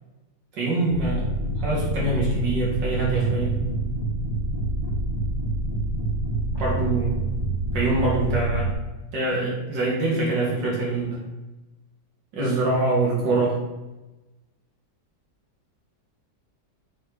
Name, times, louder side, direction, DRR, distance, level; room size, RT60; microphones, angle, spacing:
voice 1, 0.5-1.3 1.6-3.6 6.6-7.1 7.7-8.8 9.1-11.2 12.3-13.6, right 2 dB, 75° right, -4 dB, 2.5 m, -24 dB
sound 1, 0.9-8.7, right 2 dB, 25° right, 0.6 m, -27 dB
6.0 x 3.9 x 4.8 m, 1.1 s
omnidirectional pair, 2.0 m